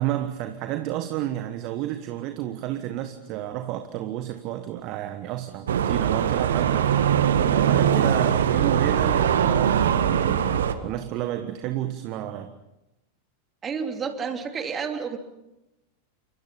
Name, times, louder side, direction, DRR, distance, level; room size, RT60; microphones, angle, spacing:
voice 1, 0.0-6.9 7.5-12.5, right 13 dB, 40° right, 1.4 m, -31 dB
sound 1, 5.7-10.7, right 9 dB, 65° right, 1.8 m, -21 dB
voice 2, 13.6-15.2, right 6 dB, 20° right, 3.0 m, -30 dB
29.0 x 25.0 x 5.5 m
figure-of-eight pair, 90°, 0 cm